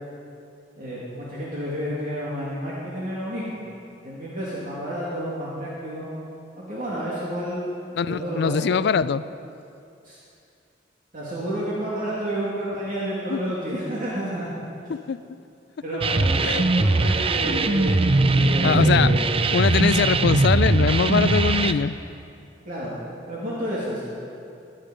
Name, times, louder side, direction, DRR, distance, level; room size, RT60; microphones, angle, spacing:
voice 1, 0.8-3.6 4.0-6.1 6.6-7.6 8.1-8.9 10.0-10.2 11.1-14.5 15.8-19.3 22.7-22.9 23.3-24.0, equal, 50° right, -7 dB, 2.5 m, -30 dB
voice 2, 8.0-9.2 13.3-13.4 14.9-15.2 15.9-16.0 16.4-16.6 18.6-19.2 19.5-22.0, left 6 dB, 65° left, 17 dB, 0.4 m, -22 dB
sound 1, 16.0-21.7, right 2 dB, 30° right, 0.5 m, -20 dB
19.0 x 10.5 x 5.1 m, 2.6 s
head